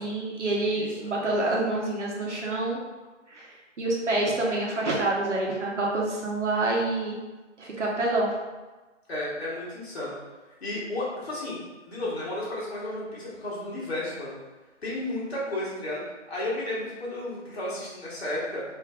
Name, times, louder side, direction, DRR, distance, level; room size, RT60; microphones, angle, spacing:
voice 1, 0.0-2.8 3.3-3.5 3.8-7.2 7.6-8.3, right 2 dB, 65° right, -3 dB, 0.9 m, -27 dB
voice 2, 0.7-1.1 9.1-10.1 10.6-14.3 14.8-16.0 16.3-18.6, left 1 dB, 55° left, -7 dB, 1.5 m, -33 dB
3.5 x 2.7 x 2.4 m, 1.2 s
hypercardioid pair, 170°, 38 cm